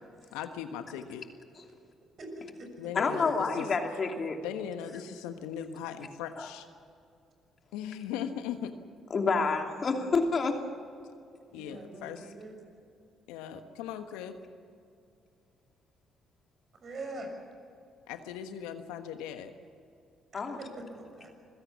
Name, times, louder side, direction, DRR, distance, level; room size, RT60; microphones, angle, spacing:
voice 1, 0.3-1.2 2.8-3.7 4.4-6.7 7.7-8.7 11.5-12.3 13.3-14.4 18.1-19.5, left 9 dB, 80° left, 8 dB, 1.3 m, -38 dB
voice 2, 2.2-3.0 11.5-12.6 16.8-17.3 20.9-21.3, right 2 dB, 50° right, 3 dB, 6.5 m, -43 dB
voice 3, 2.9-4.4 6.4-6.5 9.1-10.6 20.3-20.6, left 4 dB, 45° left, 3 dB, 2.8 m, -28 dB
26.0 x 16.5 x 7.2 m, 2.5 s
hypercardioid pair, 50°, 0 cm